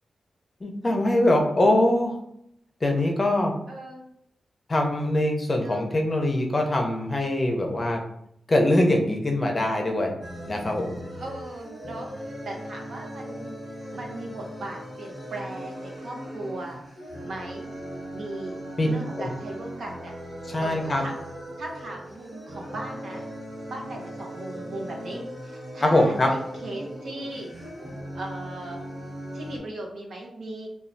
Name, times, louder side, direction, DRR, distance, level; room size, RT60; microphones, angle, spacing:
voice 1, 0.6-2.2 2.8-3.5 4.7-8.0 8.5-10.2 10.5-11.0 18.8-18.9 19.2-19.3 20.5-21.0 25.8-26.3, left 1 dB, 35° left, 2 dB, 0.5 m, -23 dB
voice 2, 3.7-4.0 5.6-5.8 11.1-13.5 13.9-16.8 17.2-17.7 18.1-20.1 20.6-21.2 21.6-23.2 23.7-27.5 28.1-28.8 29.3-30.7, right 2 dB, 80° right, -1 dB, 0.7 m, -38 dB
sound 1, 10.2-29.6, equal, 50° right, 1.2 m, -39 dB
3.1 x 2.2 x 2.6 m, 0.74 s
cardioid pair, 80°, 0 cm